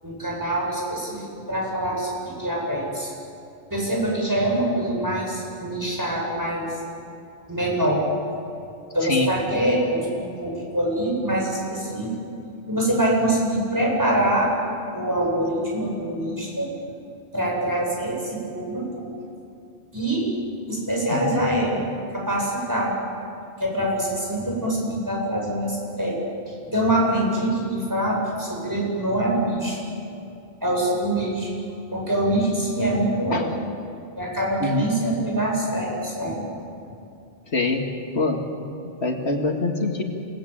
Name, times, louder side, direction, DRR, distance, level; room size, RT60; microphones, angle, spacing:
voice 1, 0.0-3.1 3.7-6.8 7.5-8.0 8.9-12.1 12.7-14.5 14.9-16.8 17.3-19.1 19.9-20.3 20.7-21.8 22.1-22.9 23.6-29.8 30.6-31.5 31.9-33.5 34.2-36.5, right 1 dB, 15° right, -3 dB, 7.9 m, -24 dB
voice 2, 21.1-21.4 33.3-33.5 34.6-34.9 37.5-37.8 38.1-38.4 39.0-40.0, left 3 dB, 80° left, 2 dB, 2.4 m, -24 dB
28.5 x 19.5 x 8.9 m, 2.6 s
omnidirectional pair, 1.1 m